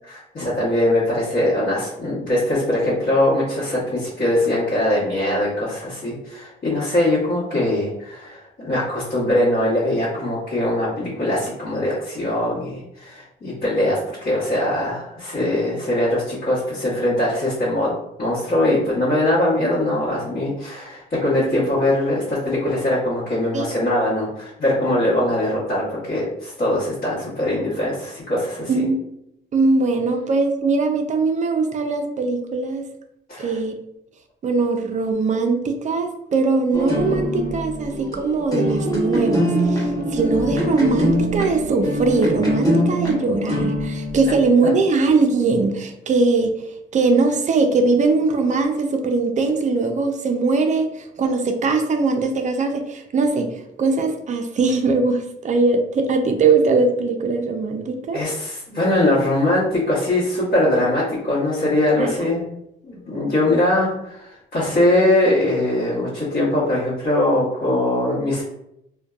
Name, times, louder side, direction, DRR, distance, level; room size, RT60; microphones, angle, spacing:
voice 1, 0.1-17.9 18.2-28.8 33.3-33.6 58.1-62.4 62.8-68.4, left 1 dB, 45° left, -10 dB, 1.1 m, -21 dB
voice 2, 28.7-29.0 29.5-32.9 33.4-33.8 34.4-46.5 46.9-58.2 62.0-62.1, right 3 dB, 40° right, 5 dB, 0.4 m, -20 dB
sound 1, 36.7-44.4, equal, 20° left, 0.9 m, -23 dB
2.5 x 2.1 x 2.3 m, 0.79 s
cardioid pair, 90°, 20 cm